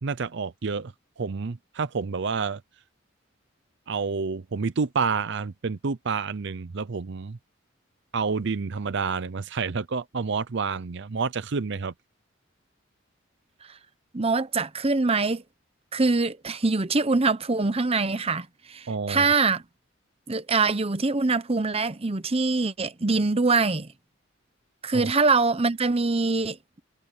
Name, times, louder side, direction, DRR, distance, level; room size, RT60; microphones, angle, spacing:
voice 1, 0.0-2.6 3.9-7.4 8.1-11.9 18.9-19.3 24.9-25.1, right 5 dB, 65° right, 0.6 m, -29 dB
voice 2, 14.1-15.4 15.9-19.6 20.3-23.9 24.8-26.8, right 3 dB, 30° right, 0.9 m, -24 dB
head